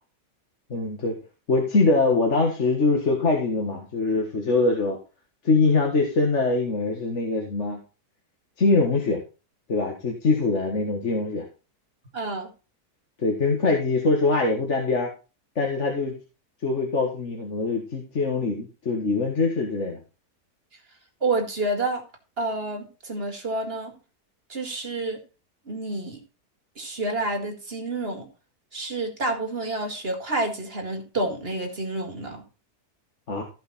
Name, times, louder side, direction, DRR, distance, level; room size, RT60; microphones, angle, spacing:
voice 1, 0.7-1.2 1.5-5.0 5.4-7.8 8.6-9.2 9.7-11.5 13.2-15.1 15.6-16.1 16.6-20.0 33.3-33.4, left 3 dB, 50° left, 1 dB, 1.9 m, -23 dB
voice 2, 12.1-12.5 21.2-22.0 22.4-23.9 24.5-25.2 25.7-26.2 26.8-28.3 28.7-32.4, right 2 dB, 40° right, 3 dB, 2.2 m, -29 dB
14.5 x 5.3 x 4.2 m, 0.32 s
omnidirectional pair, 1.6 m